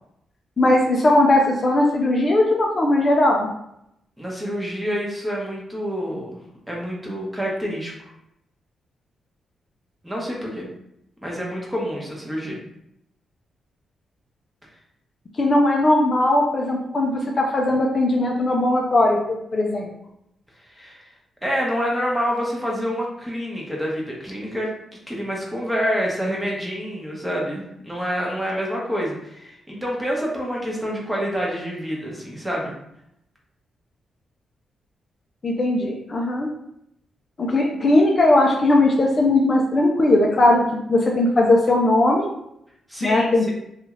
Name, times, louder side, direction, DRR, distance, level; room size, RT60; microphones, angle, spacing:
voice 1, 0.6-3.5 15.4-19.9 35.4-36.5 37.4-40.6 40.9-42.3 43.0-43.5, left 2 dB, 40° left, 0 dB, 0.5 m, -18 dB
voice 2, 4.2-6.4 6.7-8.1 10.0-10.7 11.2-12.6 20.7-21.1 21.4-24.7 25.1-32.7 42.9-43.5, equal, 5° right, -3 dB, 0.9 m, -27 dB
2.7 x 2.4 x 3.0 m, 0.79 s
cardioid pair, 80°, 0 cm